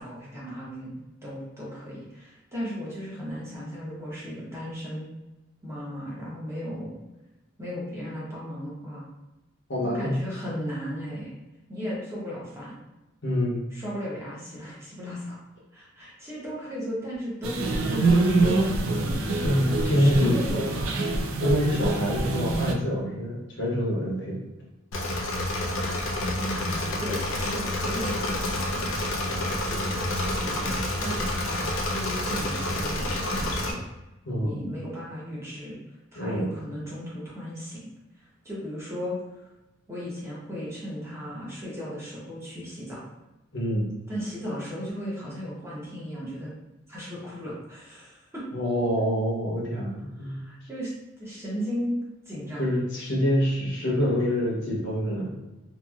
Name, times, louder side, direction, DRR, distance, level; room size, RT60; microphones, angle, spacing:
voice 1, 0.0-5.1 5.6-7.0 7.6-9.0 9.8-11.3 11.7-12.8 13.7-15.4 15.7-19.2 19.9-20.9 26.4-33.8 34.4-35.8 36.1-37.9 38.1-39.5 39.9-43.1 44.1-46.5 46.9-48.4 50.2-50.9 51.2-51.9 52.2-52.7, equal, 15° right, -7 dB, 0.8 m, -36 dB
voice 2, 9.7-10.1 13.2-13.6 19.4-20.4 21.4-24.4 34.3-34.6 36.2-36.5 43.5-43.9 48.5-50.4 52.6-55.4, equal, 60° left, -4 dB, 0.8 m, -26 dB
sound 1, 17.4-22.7, right 2 dB, 75° right, 0.4 m, -25 dB
Engine / Mechanisms, 24.9-33.7, left 1 dB, 80° left, 0.5 m, -28 dB
2.9 x 2.6 x 2.3 m, 1.0 s
head